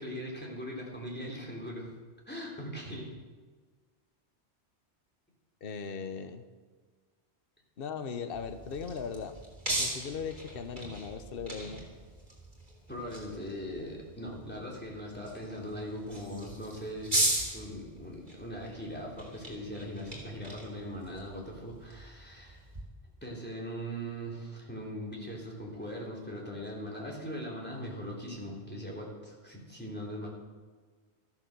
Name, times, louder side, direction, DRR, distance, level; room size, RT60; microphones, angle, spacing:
voice 1, 0.0-1.9 2.3-3.1 12.9-17.2 17.5-22.6 23.2-30.3, equal, 10° left, -3 dB, 3.6 m, -40 dB
voice 2, 5.6-6.4 7.8-9.4 9.7-11.9, left 6 dB, 55° left, 8 dB, 1.1 m, -38 dB
sound 1, 8.3-22.8, right 1 dB, 45° right, 3.9 m, -38 dB
14.0 x 11.5 x 6.9 m, 1.5 s
omnidirectional pair, 1.2 m